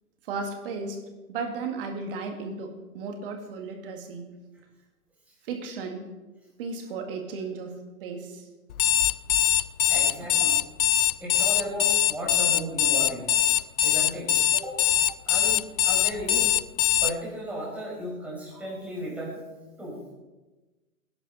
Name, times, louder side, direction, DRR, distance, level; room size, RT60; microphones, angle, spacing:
voice 1, 0.3-1.0 1.3-4.3 5.4-6.1 6.6-8.5, right 4 dB, 40° right, 4 dB, 2.3 m, -35 dB
Alarm, 8.7-17.1, left 11 dB, 70° left, 0.7 m, -22 dB
voice 2, 9.9-10.6 11.2-13.3 13.8-14.8 15.3-16.5 17.0-19.4 19.8-20.0, equal, 5° right, -5 dB, 5.2 m, -35 dB
18.0 x 11.0 x 4.3 m, 1.2 s
hypercardioid pair, 150°, 44 cm